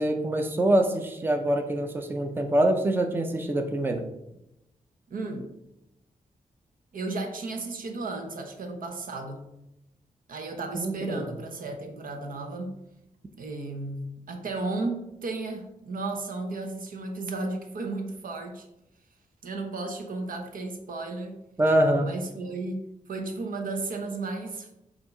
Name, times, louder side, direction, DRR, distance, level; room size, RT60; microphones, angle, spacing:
voice 1, 0.0-4.0 10.7-11.2 21.6-22.1, right 1 dB, 15° right, 5 dB, 0.5 m, -24 dB
voice 2, 5.1-5.5 6.9-9.4 10.3-12.7 13.4-18.7 19.4-21.3 22.0-24.7, right 3 dB, 80° right, 4 dB, 1.0 m, -34 dB
7.1 x 2.8 x 5.3 m, 0.87 s
wide cardioid pair, 170°, 14 cm